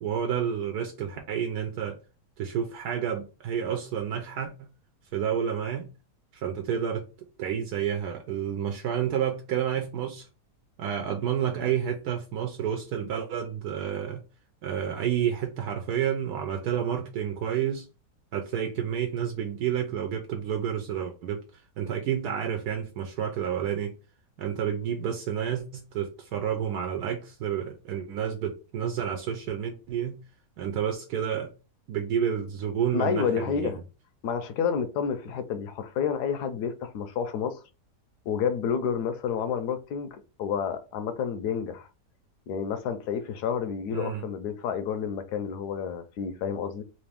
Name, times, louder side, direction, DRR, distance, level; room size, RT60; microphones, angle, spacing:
voice 1, 0.0-2.0 2.4-4.7 5.1-5.9 6.3-7.1 7.4-10.3 10.8-14.2 14.6-17.9 18.3-21.4 21.8-23.9 24.4-30.2 30.6-31.5 31.9-33.7 43.9-44.2, right 9 dB, 75° right, 1.1 m, -30 dB
voice 2, 32.9-33.8 34.2-37.6 38.3-40.1 40.4-41.9 42.5-46.8, left 7 dB, 80° left, 1.2 m, -29 dB
3.3 x 2.6 x 3.4 m
omnidirectional pair, 1.7 m